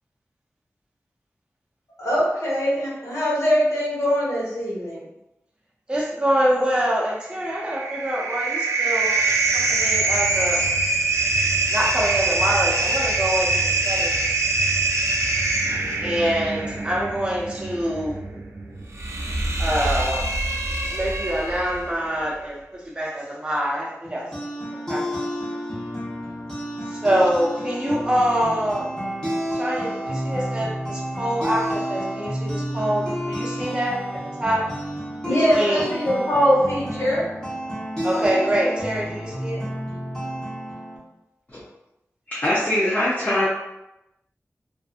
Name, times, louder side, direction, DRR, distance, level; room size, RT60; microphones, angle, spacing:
voice 1, 2.0-5.0 15.6-15.8 35.2-37.2, equal, 70° left, -7 dB, 1.2 m, -22 dB
voice 2, 5.9-9.1 9.5-10.6 11.7-14.4 16.0-18.1 19.6-20.3 20.9-22.6 22.9-24.3 24.9-25.2 26.9-28.9 29.5-34.7 35.3-35.9 38.0-39.6, equal, 15° right, -4 dB, 0.5 m, -25 dB
sound 1, 7.3-21.9, right 3 dB, 70° right, 0.4 m, -24 dB
sound 2, 24.0-41.0, equal, 10° left, 1.0 m, -30 dB
voice 3, 42.3-43.5, left 1 dB, 30° left, -8 dB, 0.6 m, -22 dB
2.6 x 2.5 x 2.4 m, 0.91 s
wide cardioid pair, 85°, 5 cm